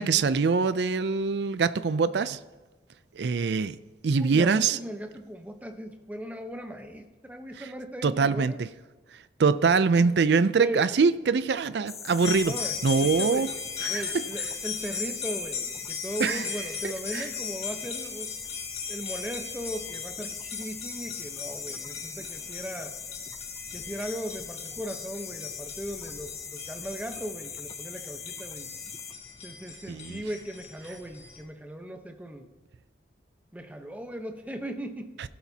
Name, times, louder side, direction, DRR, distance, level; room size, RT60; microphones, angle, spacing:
voice 1, 0.0-2.4 3.2-3.8 4.0-4.8 7.6-7.7 8.0-8.7 9.4-12.5 12.8-13.5 13.8-14.2 16.2-16.5 17.1-17.3 29.9-30.2 35.2-35.3, right 5 dB, 65° right, 0.4 m, -24 dB
voice 2, 4.1-8.6 10.6-10.9 12.4-12.7 13.0-13.5 13.9-18.4 18.9-22.9 23.7-28.7 29.4-32.5 33.5-35.2, equal, 10° right, 0.8 m, -38 dB
sound 1, 11.9-29.1, left 6 dB, 15° left, 0.4 m, -41 dB
sound 2, 12.2-31.4, left 5 dB, 35° left, 2.2 m, -38 dB
16.0 x 11.5 x 2.8 m
head